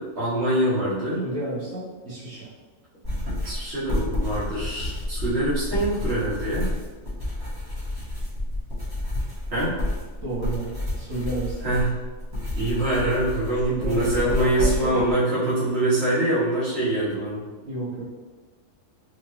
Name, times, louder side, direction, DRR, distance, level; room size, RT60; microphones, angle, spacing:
voice 1, 0.0-1.2 3.4-6.7 9.5-9.7 11.6-11.9 12.5-17.4, right 1 dB, 50° right, -9 dB, 1.4 m, -24 dB
voice 2, 1.2-2.5 10.2-11.6 13.4-15.0 17.6-18.0, right 2 dB, 85° right, -9 dB, 1.8 m, -32 dB
sound 1, 3.0-15.1, left 1 dB, 20° right, 1.2 m, -30 dB
4.6 x 2.5 x 3.1 m, 1.3 s
omnidirectional pair, 1.4 m